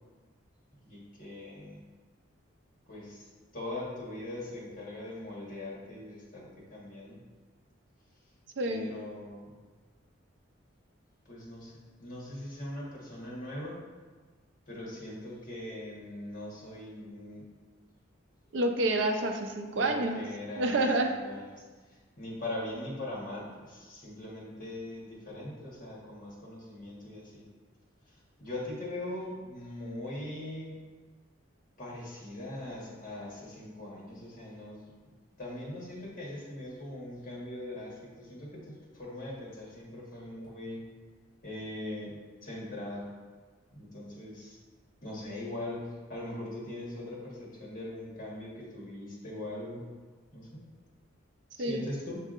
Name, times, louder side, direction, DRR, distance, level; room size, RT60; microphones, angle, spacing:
voice 1, 0.8-1.8 2.9-3.3 3.5-7.2 8.7-9.6 11.2-13.8 14.7-17.4 19.8-21.6 21.9-27.4 28.4-30.8 31.8-34.9 35.4-40.8 41.4-43.1 43.7-44.6 45.0-49.9 50.3-50.6 51.6-52.2, left 1 dB, 45° left, -5 dB, 1.2 m, -41 dB
voice 2, 18.5-20.2 20.6-21.1 51.6-51.8, right 2 dB, 60° right, 4 dB, 0.4 m, -28 dB
7.2 x 2.7 x 2.4 m, 1.4 s
head